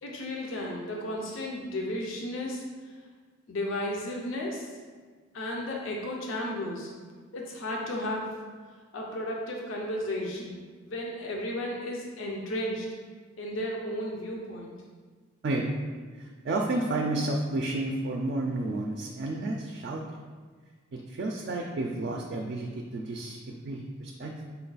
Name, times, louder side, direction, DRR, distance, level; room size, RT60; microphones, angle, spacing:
voice 1, 0.0-2.6 3.5-4.7 5.3-6.9 7.3-8.3 8.9-12.9 13.4-14.7, left 1 dB, 75° left, -1 dB, 0.6 m, -34 dB
voice 2, 15.4-15.9 16.2-20.0 20.9-24.5, right 2 dB, 55° right, 1 dB, 0.4 m, -31 dB
5.5 x 2.3 x 3.9 m, 1.5 s
head